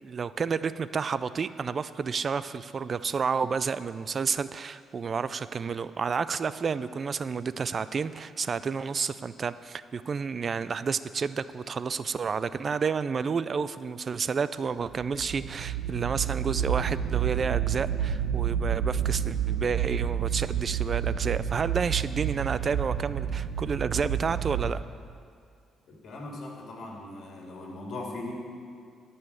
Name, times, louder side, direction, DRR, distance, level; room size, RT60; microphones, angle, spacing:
voice 1, 0.0-24.8, right 5 dB, 45° right, 15 dB, 0.3 m, -30 dB
sound 1, 15.0-24.8, right 9 dB, 85° right, 0.7 m, -29 dB
voice 2, 25.9-28.3, left 2 dB, 60° left, 0 dB, 2.5 m, -39 dB
12.5 x 5.6 x 8.5 m, 2.2 s
cardioid pair, 90°, 0 cm